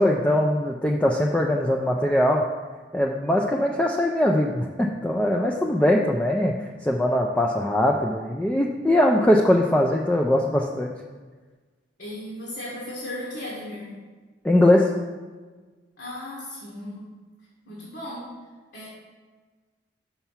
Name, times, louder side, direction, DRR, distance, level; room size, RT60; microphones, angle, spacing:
voice 1, 0.0-2.4 2.9-6.5 6.8-10.9 14.4-14.9, left 1 dB, 5° left, -1 dB, 0.4 m, -21 dB
voice 2, 12.0-13.9 16.0-17.1 17.6-18.3 18.7-18.9, left 1 dB, 75° left, -6 dB, 1.6 m, -36 dB
5.8 x 5.5 x 5.7 m, 1.4 s
head